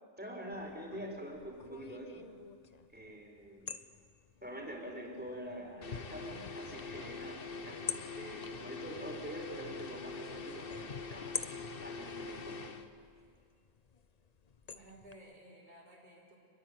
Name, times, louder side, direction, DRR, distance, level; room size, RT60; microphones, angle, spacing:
voice 1, 0.2-2.2 2.9-3.7 4.4-11.4 11.8-12.6, equal, 10° right, 1 dB, 4.2 m, -45 dB
sound 1, 0.5-15.1, left 6 dB, 40° left, 0.8 m, -49 dB
sound 2, 5.8-12.9, left 4 dB, 55° left, 1.3 m, -44 dB
voice 2, 14.6-16.4, right 1 dB, 40° right, -2 dB, 4.1 m, -56 dB
26.5 x 21.5 x 8.1 m, 2.2 s
omnidirectional pair, 1.1 m